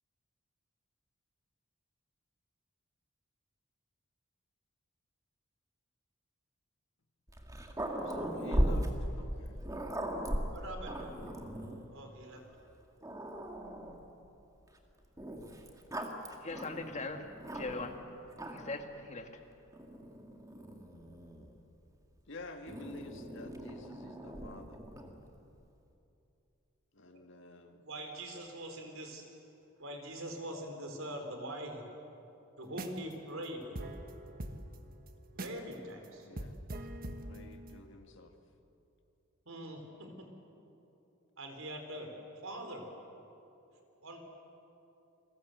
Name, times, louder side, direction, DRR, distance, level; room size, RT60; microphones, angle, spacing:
Growling, 7.3-11.9 12.6-12.7 13.0-14.1 15.2-18.0 18.3-18.8 19.7-21.5 22.7-25.2, equal, 15° right, 2.0 m, -38 dB
voice 1, 8.0-9.6 22.3-24.8 26.9-27.8 36.2-36.6 37.0-38.3, left 2 dB, 60° left, 5 dB, 1.9 m, -50 dB
voice 2, 10.5-11.1 11.9-12.4 27.8-29.2 29.8-31.8 32.6-33.8 35.3-36.3 39.5-40.3 41.4-42.2 42.4-42.9 44.0-44.2, right 1 dB, 75° right, 4 dB, 4.3 m, -43 dB
voice 3, 16.4-17.2 17.5-18.0 18.5-19.3, left 3 dB, 35° left, 4 dB, 2.1 m, -40 dB
sound 1, 32.7-33.1 33.4-33.5 33.8-35.7 36.0-36.1 36.4-37.8, right 1 dB, 45° right, 1.5 m, -43 dB
30.0 x 21.5 x 8.1 m, 2.8 s
head